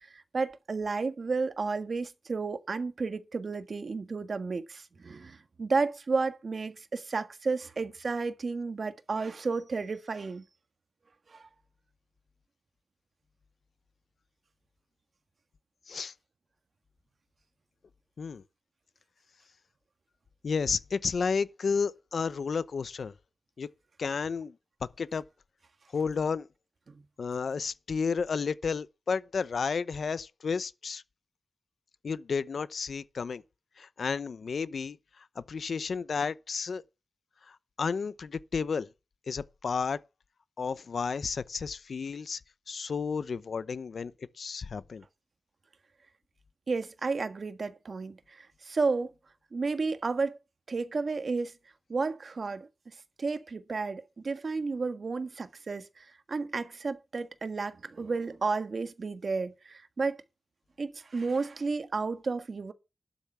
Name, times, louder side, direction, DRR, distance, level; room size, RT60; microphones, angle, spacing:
voice 1, 0.0-10.4 11.3-11.5 26.9-27.0 46.7-49.1 49.5-50.4 50.7-51.5 51.9-52.7 53.2-60.2 60.8-62.7, right 4 dB, 55° right, 1.5 m, -32 dB
voice 2, 20.4-23.1 23.6-23.7 24.0-24.5 24.8-25.2 25.9-26.5 27.2-31.0 32.0-33.4 33.8-35.0 35.4-36.8 37.5-38.9 39.3-40.0 40.6-42.4 42.7-44.1 44.4-45.0, left 5 dB, 75° left, 0.7 m, -32 dB
12.5 x 6.9 x 6.8 m
wide cardioid pair, 100°, 0 cm